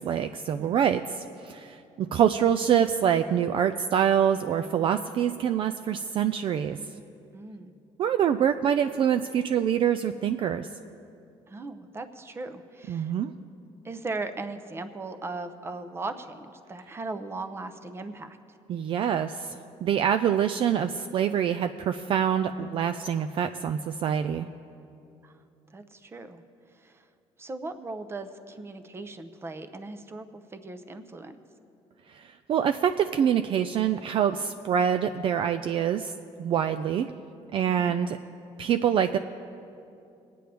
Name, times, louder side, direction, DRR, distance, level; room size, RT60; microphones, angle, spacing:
voice 1, 0.0-6.8 8.0-10.7 12.9-13.3 18.7-24.5 32.1-36.1 36.4-37.1 37.5-38.2 38.6-39.2, right 9 dB, 50° right, 9 dB, 0.4 m, -25 dB
voice 2, 7.3-7.7 11.5-13.1 13.8-18.6 25.2-25.4 25.7-26.4 26.7-27.0 27.4-31.4 37.8-38.0, right 3 dB, 20° right, 9 dB, 0.7 m, -38 dB
21.5 x 9.3 x 3.4 m, 2.7 s
cardioid pair, 120°, 12 cm